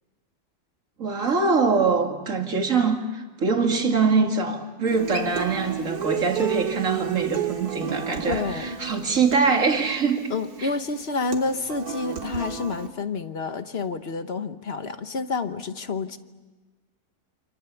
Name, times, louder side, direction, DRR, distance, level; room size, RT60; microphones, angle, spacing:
voice 1, 1.0-10.2 10.6-10.7, right 4 dB, 55° right, 2.7 m, -23 dB
Human voice / Acoustic guitar, 4.9-12.9, right 7 dB, 80° right, 2.5 m, -32 dB
voice 2, 8.3-9.0 10.3-16.2, left 4 dB, 45° left, 1.3 m, -29 dB
29.5 x 27.5 x 7.1 m
omnidirectional pair, 1.6 m